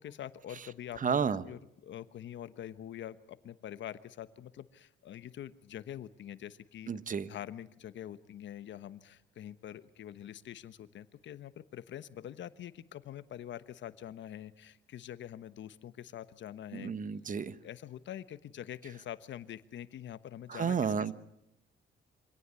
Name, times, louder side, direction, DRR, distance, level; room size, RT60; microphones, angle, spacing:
voice 1, 0.0-1.2 1.4-7.0 7.3-16.9 17.6-21.1, left 11 dB, 65° left, 14 dB, 1.2 m, -45 dB
voice 2, 1.0-1.4 6.9-7.3 16.7-17.6 20.5-21.1, right 6 dB, 40° right, 15 dB, 1.2 m, -31 dB
25.5 x 17.5 x 8.3 m, 0.80 s
cardioid pair, 90°, 20 cm